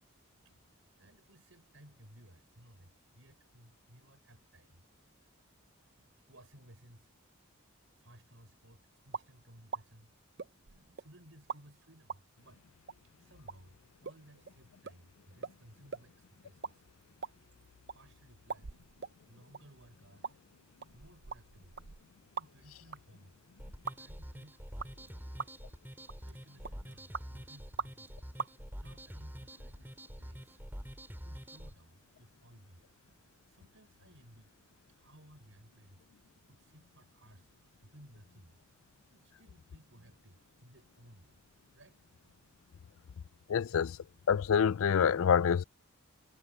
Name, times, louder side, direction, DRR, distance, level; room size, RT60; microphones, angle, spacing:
voice 1, 0.4-4.8 5.2-5.5 6.0-7.1 8.0-10.1 10.6-12.6 13.0-16.9 17.9-20.4 20.9-21.9 22.3-23.5 24.0-25.4 26.2-28.2 28.8-33.1 33.5-34.6 34.9-37.6 37.8-38.6 39.1-41.4 41.7-42.0, right 1 dB, 65° right, 6.2 m, -60 dB
sound 1, 9.1-9.3 9.7-9.8 10.4-11.1 11.5-11.6 12.1-12.2 12.9-13.0 13.5-13.6 14.0-14.2 14.5-14.6 14.8-15.0 15.4-15.6 15.9-16.1 16.4-16.7 17.0-18.0 18.5-19.1 19.5-19.6 20.2-20.4 20.8-22.7 22.9-23.0 23.9-24.0 24.8-25.1 25.4-25.7 26.1-26.3 26.6-27.2 27.8-28.1 28.4-28.5, right 5 dB, 50° right, 0.7 m, -41 dB
sound 2, 23.6-31.7, equal, 10° right, 6.6 m, -46 dB
voice 2, 43.5-44.0 44.3-45.6, left 7 dB, 75° left, 0.4 m, -26 dB
head